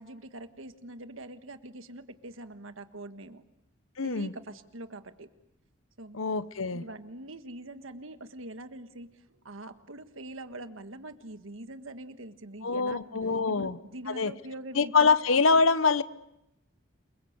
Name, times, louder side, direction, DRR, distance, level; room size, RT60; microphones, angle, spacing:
voice 1, 0.0-3.4 4.0-5.3 6.0-6.2 6.7-13.0 13.5-15.1, right 1 dB, 75° right, 9 dB, 1.6 m, -44 dB
voice 2, 4.0-4.3 6.1-6.8 12.6-13.8 14.1-14.3 14.7-16.0, left 4 dB, 75° left, 15 dB, 1.0 m, -24 dB
28.5 x 22.5 x 8.1 m, 0.86 s
head